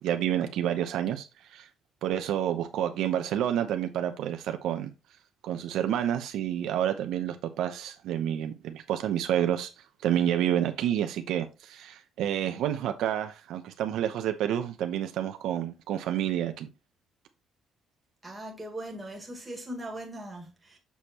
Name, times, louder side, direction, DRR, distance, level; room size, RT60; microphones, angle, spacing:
voice 1, 0.0-1.7 2.0-4.9 5.4-9.7 10.0-16.7, right 10 dB, 70° right, 0.8 m, -29 dB
voice 2, 18.2-20.8, right 1 dB, 10° right, 1.8 m, -39 dB
7.0 x 6.5 x 3.0 m
cardioid pair, 175°, 0 cm